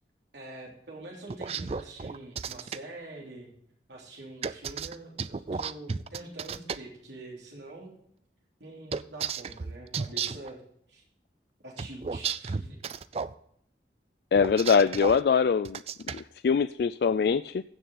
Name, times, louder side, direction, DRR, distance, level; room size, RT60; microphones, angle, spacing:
voice 1, 0.3-3.5 3.9-8.0 8.6-10.6 10.9-11.0 11.6-12.8, right 2 dB, 80° right, -2 dB, 3.2 m, -45 dB
sound 1, 1.3-2.8 4.4-6.8 8.9-10.5 11.8-13.3 14.3-15.2 15.6-16.2, right 5 dB, 35° right, 0.3 m, -33 dB
voice 2, 14.3-15.8 16.1-17.6, left 6 dB, 60° left, 14 dB, 0.3 m, -23 dB
15.5 x 6.8 x 3.9 m, 0.70 s
head